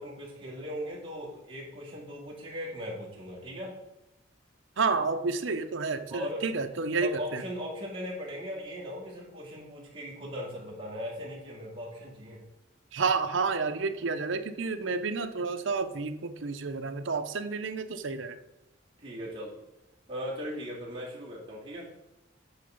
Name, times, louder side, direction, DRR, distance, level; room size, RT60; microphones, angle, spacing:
voice 1, 0.0-3.8 6.1-6.4 7.0-12.4 19.0-19.6 20.1-21.9, equal, 25° right, -5 dB, 2.5 m, -38 dB
voice 2, 4.8-7.4 12.9-18.4, right 4 dB, 75° right, 8 dB, 0.7 m, -30 dB
9.0 x 3.9 x 5.2 m, 0.96 s
head